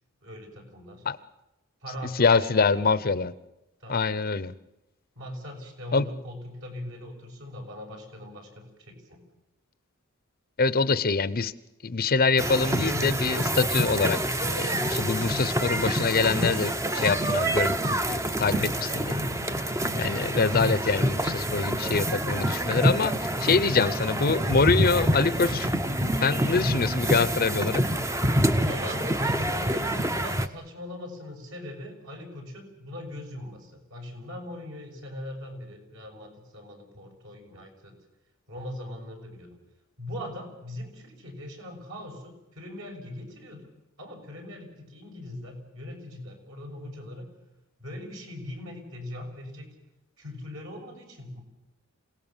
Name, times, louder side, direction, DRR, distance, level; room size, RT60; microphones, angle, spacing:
voice 1, 0.2-1.0 1.8-2.9 3.8-4.1 5.1-9.2 18.5-18.8 26.4-26.8 28.6-37.9 38.5-39.6 40.0-43.6 44.0-47.3 47.8-49.7 50.2-51.4, left 1 dB, 65° right, 2 dB, 6.7 m, -40 dB
voice 2, 2.1-3.3 3.9-4.5 5.9-6.1 10.6-11.5 11.8-17.8 18.0-19.1 19.9-25.7 26.2-27.8, left 4 dB, 45° left, 15 dB, 0.7 m, -25 dB
sound 1, 12.4-30.5, right 1 dB, 15° right, 0.8 m, -27 dB
27.5 x 18.0 x 7.3 m, 0.94 s
head